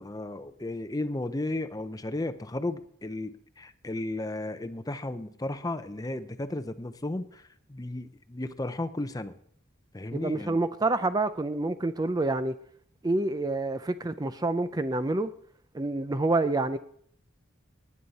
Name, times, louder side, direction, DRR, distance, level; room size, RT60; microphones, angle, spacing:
voice 1, 0.0-9.4 9.9-10.6, left 2 dB, 20° left, 0.6 m, -34 dB
voice 2, 10.1-12.6 13.0-15.3 15.7-16.8, right 2 dB, 20° right, 0.4 m, -27 dB
18.5 x 9.5 x 4.1 m
head